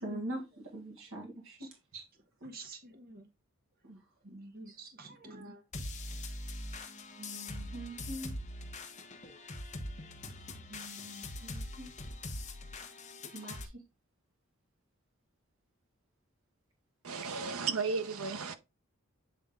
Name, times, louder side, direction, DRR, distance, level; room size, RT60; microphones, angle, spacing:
voice 1, 0.0-2.0 3.8-4.0 4.2-4.8 5.2-5.5 7.2-8.3 10.7-11.9 13.3-13.8, right 1 dB, 65° right, 1.8 m, -44 dB
voice 2, 2.4-3.3 4.5-5.6, right 2 dB, 45° right, 1.1 m, -48 dB
sound 1, 5.7-13.7, left 2 dB, 35° left, 1.0 m, -42 dB
voice 3, 17.0-18.5, right 5 dB, 90° right, 0.9 m, -34 dB
8.4 x 3.4 x 3.7 m
head